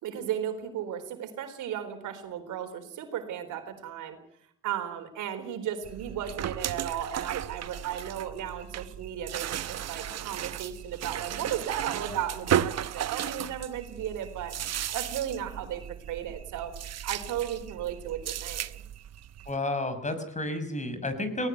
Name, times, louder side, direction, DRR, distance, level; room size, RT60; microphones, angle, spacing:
voice 1, 0.0-4.2 4.6-14.6 14.9-16.7 17.0-18.8, right 10 dB, 85° right, 8 dB, 4.0 m, -35 dB
sound 1, 5.8-19.6, right 10 dB, 60° right, 0.9 m, -35 dB
voice 2, 19.5-21.5, left 1 dB, 25° left, 10 dB, 5.9 m, -31 dB
19.5 x 18.5 x 9.3 m, 0.69 s
cardioid pair, 90°, 30 cm